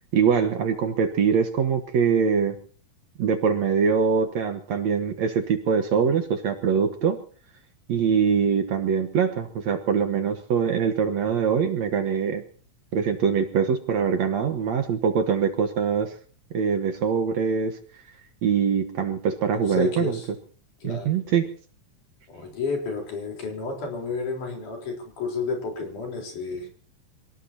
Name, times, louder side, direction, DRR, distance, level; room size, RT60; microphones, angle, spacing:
voice 1, 0.1-2.6 3.2-7.2 7.9-12.4 12.9-16.1 16.5-17.8 18.4-20.2 20.8-21.5, right 6 dB, 60° right, 6 dB, 2.3 m, -23 dB
voice 2, 19.5-20.3 20.8-21.2 22.3-26.7, left 4 dB, 65° left, 1 dB, 5.6 m, -31 dB
27.5 x 18.5 x 2.9 m, 0.42 s
omnidirectional pair, 3.9 m